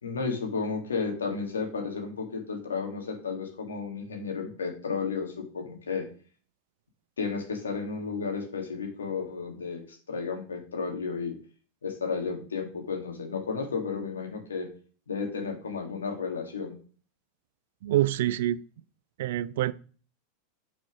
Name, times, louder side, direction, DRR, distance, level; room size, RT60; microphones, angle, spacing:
voice 1, 0.0-6.1 7.2-11.4 11.8-14.7 15.1-16.7, left 5 dB, 90° left, 1.8 m, -33 dB
voice 2, 17.8-18.6 19.2-19.7, right 14 dB, 70° right, 0.4 m, -26 dB
6.1 x 4.3 x 6.0 m
hypercardioid pair, 100°, 0 cm